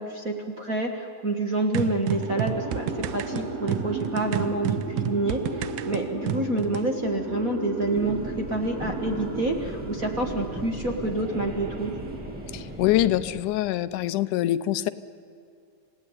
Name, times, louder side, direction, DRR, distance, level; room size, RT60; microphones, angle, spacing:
voice 1, 0.0-11.9, right 2 dB, 35° right, 3 dB, 1.5 m, -28 dB
sound 1, 1.7-6.9, right 10 dB, 80° right, 2.2 m, -30 dB
sound 2, 1.9-13.0, right 3 dB, 55° right, 4.1 m, -35 dB
sound 3, 7.9-13.4, equal, 10° right, 0.4 m, -39 dB
voice 2, 12.5-14.9, left 14 dB, 80° left, 14 dB, 2.2 m, -24 dB
27.5 x 17.0 x 9.8 m, 2.5 s
omnidirectional pair, 3.7 m